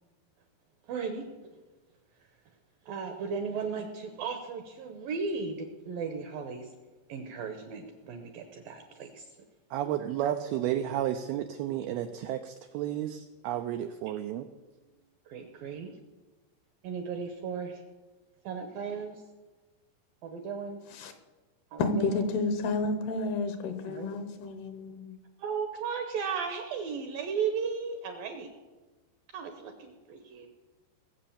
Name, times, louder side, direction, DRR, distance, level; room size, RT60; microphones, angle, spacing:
voice 1, 0.9-1.2 2.9-6.7 7.1-9.2 14.1-14.2 15.3-15.9 16.8-17.8 18.4-19.2 20.2-20.8 21.7-22.2 23.9-24.2 25.4-28.5 29.3-30.5, right 5 dB, 75° right, 2.2 m, -35 dB
voice 2, 9.7-14.5, right 11 dB, 90° right, 2.2 m, -32 dB
voice 3, 21.8-25.1, left 3 dB, 70° left, 2.8 m, -31 dB
20.0 x 7.7 x 7.1 m
omnidirectional pair, 5.2 m